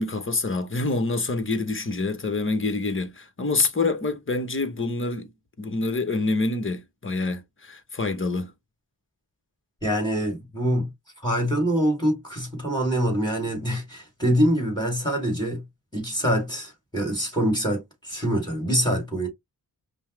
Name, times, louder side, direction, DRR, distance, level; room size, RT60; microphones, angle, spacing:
voice 1, 0.0-5.3 5.6-8.5, left 3 dB, 30° left, 0.9 m, -26 dB
voice 2, 9.8-10.9 11.2-15.6 15.9-19.3, equal, 10° left, 2.4 m, -25 dB
5.4 x 2.1 x 3.1 m
wide cardioid pair, 80°, 43 cm